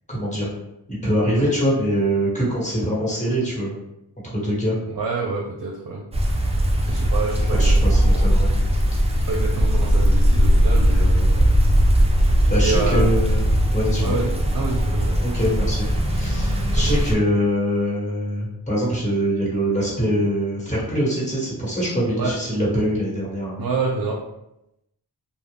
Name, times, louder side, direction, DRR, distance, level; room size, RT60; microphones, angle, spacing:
voice 1, 0.1-0.5 0.9-3.7 4.2-4.7 6.9-7.0 7.5-8.5 9.1-9.3 12.5-13.4 13.7-14.2 15.2-23.7, equal, 15° left, -6 dB, 1.4 m, -23 dB
voice 2, 4.9-6.0 6.9-8.3 9.3-11.5 12.6-13.1 14.0-15.2 16.8-16.9 22.2-22.3 23.6-24.2, right 3 dB, 60° right, -1 dB, 0.6 m, -27 dB
sound 1, 6.1-17.1, equal, 15° right, 0.4 m, -19 dB
2.4 x 2.1 x 3.4 m, 0.84 s
cardioid pair, 50°, 42 cm